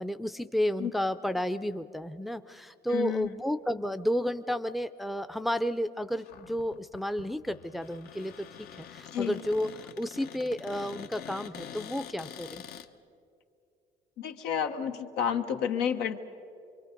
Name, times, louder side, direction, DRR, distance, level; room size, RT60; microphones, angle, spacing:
voice 1, 0.0-12.6, equal, ahead, 10 dB, 0.5 m, -32 dB
voice 2, 2.9-3.3 9.1-9.4 14.2-16.2, left 8 dB, 90° left, 5 dB, 1.2 m, -30 dB
Cupboard open or close, 6.2-12.9, left 9 dB, 70° left, 0.9 m, -46 dB
26.0 x 23.5 x 5.3 m, 2.5 s
cardioid pair, 110°, 17 cm